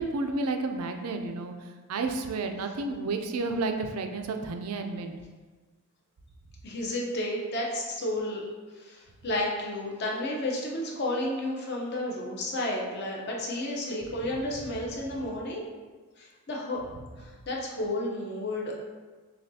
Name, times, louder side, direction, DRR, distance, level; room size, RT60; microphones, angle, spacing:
voice 1, 0.0-1.5 1.9-5.1, right 3 dB, 80° right, 5 dB, 0.4 m, -31 dB
voice 2, 6.6-8.4 8.8-15.6 16.2-16.8 17.2-18.8, left 1 dB, 50° left, -2 dB, 0.7 m, -32 dB
6.5 x 2.3 x 2.7 m, 1.4 s
head